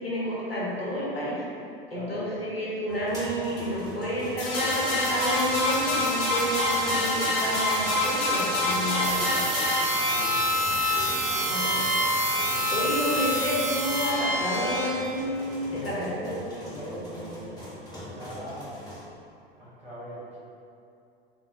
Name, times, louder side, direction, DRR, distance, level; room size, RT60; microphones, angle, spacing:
voice 1, 0.0-1.4 1.9-9.4 11.5-11.7 12.7-16.3 16.8-17.3, equal, 85° left, -7 dB, 0.8 m, -30 dB
sound 1, 2.9-19.0, equal, 15° left, 1.2 m, -43 dB
sound 2, 4.4-14.9, left 1 dB, 60° left, 0.9 m, -26 dB
sound 3, 9.0-14.1, right 5 dB, 70° right, 0.5 m, -33 dB
voice 2, 9.8-10.4 10.7-12.0 12.4-13.4 15.7-17.5 17.9-18.7 19.6-20.4, right 1 dB, 20° right, -9 dB, 1.2 m, -41 dB
3.9 x 2.2 x 2.8 m, 2.6 s
figure-of-eight pair, 85°, 29 cm